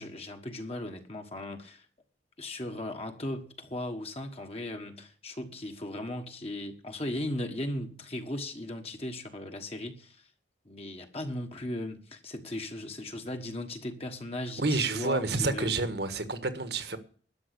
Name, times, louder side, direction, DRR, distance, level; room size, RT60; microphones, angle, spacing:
voice 1, 0.0-1.9 2.4-10.3 10.6-15.7, left 1 dB, 35° left, 1.4 m, -37 dB
voice 2, 14.6-17.0, right 3 dB, 60° right, 1.5 m, -29 dB
12.5 x 7.2 x 8.3 m
head